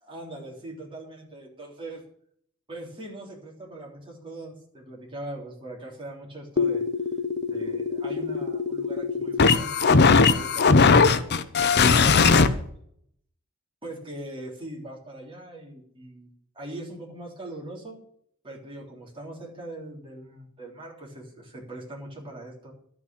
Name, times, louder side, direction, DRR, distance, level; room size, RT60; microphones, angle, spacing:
voice 1, 0.0-2.0 2.7-6.8 7.5-12.6 13.8-18.0 18.4-22.7, right 1 dB, 25° right, -2 dB, 3.4 m, -41 dB
sound 1, 6.6-12.5, left 4 dB, 50° left, 0.7 m, -20 dB
12.0 x 6.1 x 8.7 m, 0.67 s
head